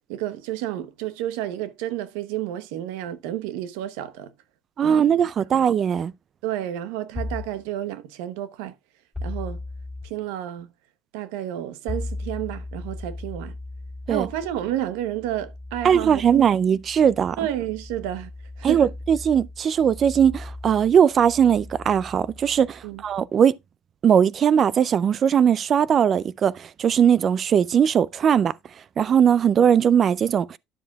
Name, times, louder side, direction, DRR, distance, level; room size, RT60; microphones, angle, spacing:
voice 1, 0.1-4.3 4.8-5.0 5.5-5.6 6.4-8.7 9.2-9.6 10.0-10.7 11.1-13.6 14.1-16.4 17.4-18.3 18.6-18.8 22.8-23.0, right 12 dB, 90° right, 0.8 m, -30 dB
voice 2, 4.8-6.1 14.1-14.3 15.8-17.4 18.6-23.5 24.0-28.5 29.0-30.6, right 8 dB, 40° right, 0.4 m, -19 dB
sound 1, 7.2-7.6 9.1-10.1 11.9-23.2, left 2 dB, ahead, 3.5 m, -37 dB
10.0 x 7.3 x 2.3 m
supercardioid pair, 105°, 0 cm